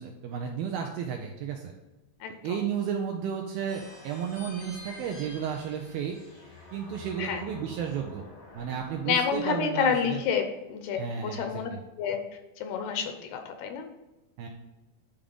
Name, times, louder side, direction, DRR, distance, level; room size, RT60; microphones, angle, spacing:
voice 1, 0.0-1.7 2.4-6.2 6.7-8.3 8.5-10.2 11.0-11.8 14.4-14.5, right 7 dB, 80° right, 2 dB, 2.2 m, -33 dB
voice 2, 2.2-2.6 7.2-7.4 9.1-11.7 12.0-12.2 12.6-13.9, left 7 dB, 80° left, 6 dB, 2.6 m, -29 dB
sound 1, 3.7-9.4, left 2 dB, 45° left, 1.0 m, -48 dB
10.0 x 3.7 x 5.3 m, 1.1 s
omnidirectional pair, 4.9 m